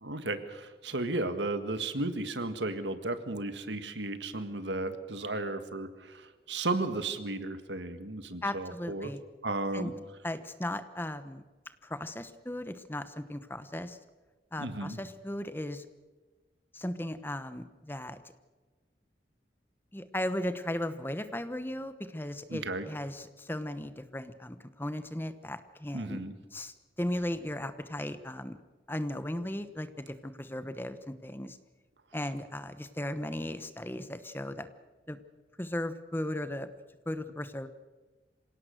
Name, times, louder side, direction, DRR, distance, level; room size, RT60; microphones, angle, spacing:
voice 1, 0.0-9.1 9.4-9.9 14.6-15.0 22.5-22.9 25.9-26.3, right 2 dB, 90° right, 9 dB, 1.7 m, -34 dB
voice 2, 8.4-9.2 9.7-9.9 10.2-11.4 11.8-14.0 14.5-15.9 16.7-18.2 19.9-26.2 26.5-28.6 28.9-31.6 32.1-34.7 35.1-35.2 35.6-36.7 37.1-37.7, left 1 dB, 10° left, 11 dB, 1.0 m, -36 dB
26.5 x 17.5 x 6.5 m, 1.3 s
head